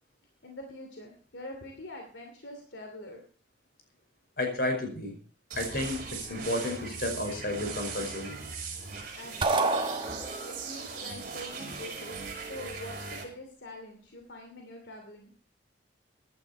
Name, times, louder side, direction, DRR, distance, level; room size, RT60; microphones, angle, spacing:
voice 1, 0.4-3.2 9.2-10.0 10.4-15.3, left 1 dB, 80° left, 2 dB, 2.7 m, -45 dB
voice 2, 4.4-5.1 5.5-8.4, left 1 dB, 55° left, 3 dB, 5.4 m, -32 dB
sound 1, 5.5-13.2, right 4 dB, 50° right, 5.0 m, -39 dB
sound 2, 9.4-10.7, right 3 dB, 25° right, 1.3 m, -28 dB
15.5 x 11.5 x 4.4 m, 0.43 s
head